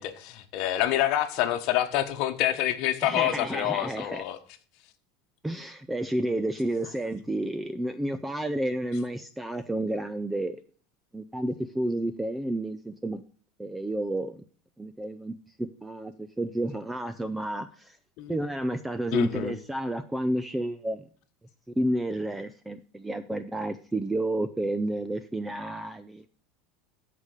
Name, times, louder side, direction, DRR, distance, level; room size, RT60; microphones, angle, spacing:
voice 1, 0.0-4.4 18.2-18.4 19.1-19.5, left 12 dB, 50° left, 6 dB, 1.3 m, -27 dB
voice 2, 3.0-4.2 5.4-10.6 11.1-13.2 13.6-14.4 14.8-18.0 18.3-21.1 21.8-26.3, right 1 dB, 5° right, 12 dB, 0.4 m, -31 dB
13.5 x 5.1 x 6.5 m, 0.43 s
supercardioid pair, 155°, 0 cm